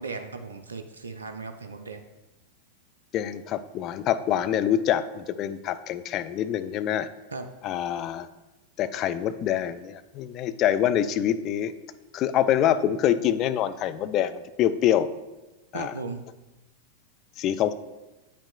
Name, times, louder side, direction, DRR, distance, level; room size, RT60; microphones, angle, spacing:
voice 1, 0.0-2.0 7.3-7.5 15.7-16.2, right 4 dB, 70° right, 6 dB, 0.3 m, -36 dB
voice 2, 3.1-7.1 7.6-8.3 8.8-11.7 12.1-15.1 15.7-15.9 17.4-17.7, left 10 dB, 35° left, 11 dB, 0.3 m, -25 dB
8.4 x 5.8 x 2.2 m, 1.1 s
figure-of-eight pair, 90°, 0 cm